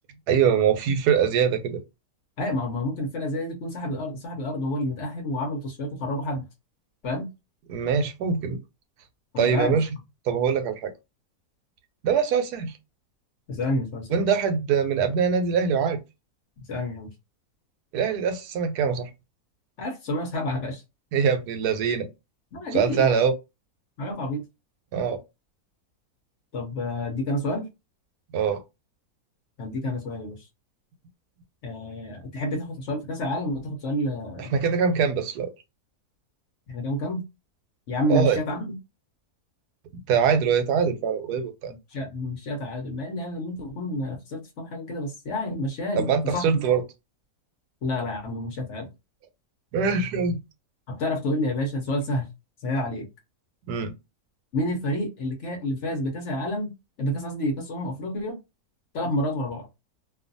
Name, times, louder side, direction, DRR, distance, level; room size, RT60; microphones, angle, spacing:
voice 1, 0.3-1.8 7.7-8.6 9.4-9.8 10.3-10.9 12.0-12.7 14.1-16.0 17.9-19.1 21.1-22.1 22.7-23.3 24.9-25.2 28.3-28.6 34.5-35.5 38.1-38.4 40.1-41.7 45.9-46.8 49.7-50.4 53.7-53.9, right 6 dB, 90° right, 1.1 m, -23 dB
voice 2, 2.4-6.5 7.0-7.3 9.3-9.8 13.5-14.2 16.6-17.1 19.8-20.8 22.5-23.2 24.0-24.4 26.5-27.7 29.6-30.5 31.6-34.5 36.7-37.2 37.9-38.8 41.7-46.6 47.8-48.9 50.9-52.3 52.6-53.1 54.5-56.7 57.0-58.4 58.9-59.7, left 1 dB, 60° left, 0.9 m, -29 dB
2.6 x 2.4 x 2.5 m
omnidirectional pair, 1.6 m